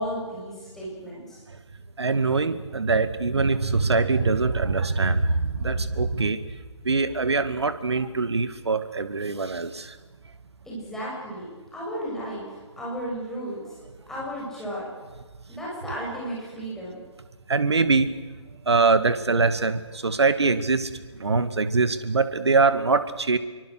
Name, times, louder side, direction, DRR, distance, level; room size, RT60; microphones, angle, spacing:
voice 1, 0.0-1.4 10.7-12.5 12.8-13.6 14.1-14.9 15.5-17.0, equal, 5° left, -6 dB, 7.6 m, -34 dB
voice 2, 2.0-6.4 6.8-10.0 17.5-18.1 18.7-23.4, right 4 dB, 65° right, 11 dB, 2.3 m, -23 dB
27.5 x 24.0 x 6.5 m, 1.3 s
figure-of-eight pair, 140°, 15 cm